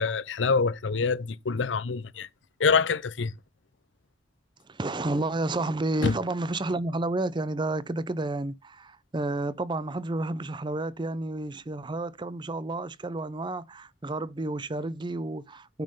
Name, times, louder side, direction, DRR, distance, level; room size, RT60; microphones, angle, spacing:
voice 1, 0.0-2.3 2.6-3.3 6.0-6.1, left 5 dB, 90° left, 0.7 m, -25 dB
voice 2, 4.7-15.8, right 2 dB, 25° right, 0.6 m, -31 dB
8.9 x 5.4 x 5.5 m
head